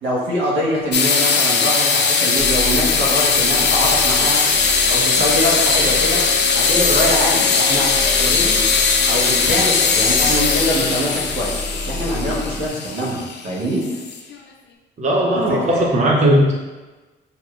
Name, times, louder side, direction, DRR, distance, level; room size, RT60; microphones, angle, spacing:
voice 1, 0.0-4.4 4.9-6.2 6.5-8.6 9.0-13.8 15.5-15.9, equal, 90° right, -5 dB, 1.2 m, -23 dB
sound 1, 0.9-14.3, left 5 dB, 60° left, 0.5 m, -18 dB
sound 2, 2.4-12.7, left 2 dB, 15° left, 1.0 m, -31 dB
voice 2, 15.0-16.5, right 1 dB, 35° right, -2 dB, 0.6 m, -17 dB
4.8 x 2.7 x 2.4 m, 1.2 s
cardioid pair, 90°, 20 cm